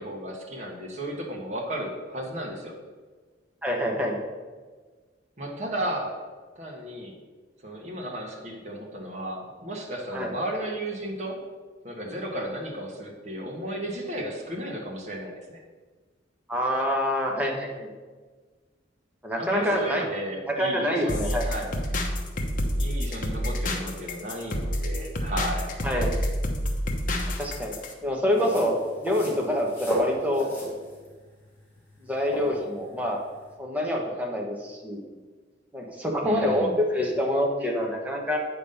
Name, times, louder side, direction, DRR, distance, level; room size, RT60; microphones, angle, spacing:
voice 1, 0.0-2.7 5.4-6.1 6.6-7.1 7.6-11.4 11.8-15.6 19.4-21.7 22.8-25.7 36.2-36.8, right 1 dB, 40° right, -1 dB, 1.4 m, -34 dB
voice 2, 3.6-4.2 10.1-10.3 16.5-17.9 19.2-20.0 20.5-21.5 25.8-26.1 27.4-27.7 28.0-30.5 32.0-33.2 33.6-35.0 35.7-38.4, equal, 10° right, -1 dB, 1.2 m, -26 dB
sound 1, 21.1-27.9, equal, 45° left, 1.0 m, -28 dB
sound 2, 28.3-33.5, right 1 dB, 10° left, 2.6 m, -34 dB
8.5 x 5.3 x 5.5 m, 1.4 s
head